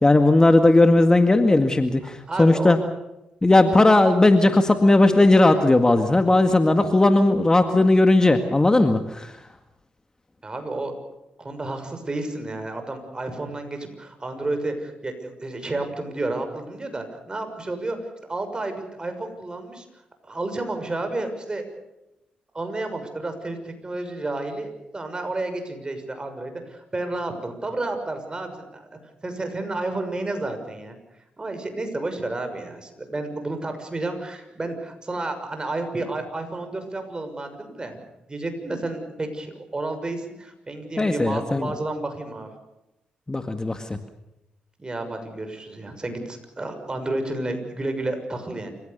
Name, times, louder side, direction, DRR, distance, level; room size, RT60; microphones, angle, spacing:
voice 1, 0.0-2.8 3.4-9.3 41.0-41.7 43.3-44.0, left 2 dB, 20° left, 7 dB, 2.0 m, -17 dB
voice 2, 2.3-2.8 10.4-10.9 11.4-18.0 18.3-19.9 20.2-21.7 22.5-31.0 31.4-38.0 38.3-42.5 44.8-48.7, right 2 dB, 30° right, 7 dB, 6.3 m, -31 dB
28.5 x 16.5 x 6.8 m, 0.92 s
supercardioid pair, 55°, 3 cm